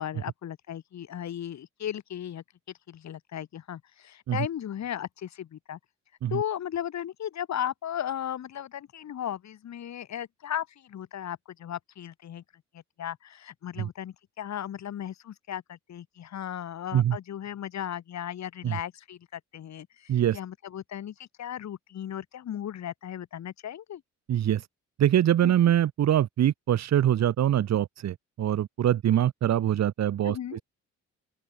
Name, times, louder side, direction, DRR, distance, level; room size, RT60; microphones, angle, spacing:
voice 1, 0.0-2.4 2.9-5.8 6.3-12.4 12.7-24.0 25.4-25.5 30.2-30.6, left 10 dB, 65° left, 4.2 m, -36 dB
voice 2, 20.1-20.4 24.3-24.7 25.0-30.6, right 11 dB, 60° right, 1.4 m, -24 dB
open air
cardioid pair, 90°, 30 cm